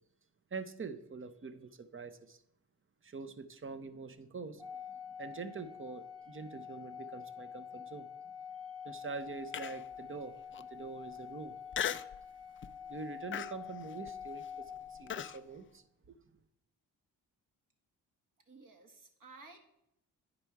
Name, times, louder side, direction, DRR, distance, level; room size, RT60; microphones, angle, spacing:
voice 1, 0.5-2.4 3.0-4.8 5.2-8.1 8.8-11.6 12.9-16.4, right 4 dB, 30° right, 0.8 m, -45 dB
Organ, 4.6-15.4, left 7 dB, 10° right, 1.0 m, -47 dB
Human voice, 9.5-10.0 10.5-10.6 11.7-12.2 12.6-12.9 13.3-15.4, left 9 dB, 30° left, 0.4 m, -38 dB
voice 2, 18.5-19.6, right 3 dB, 50° right, 2.0 m, -55 dB
9.8 x 5.1 x 4.6 m
cardioid pair, 60°, 41 cm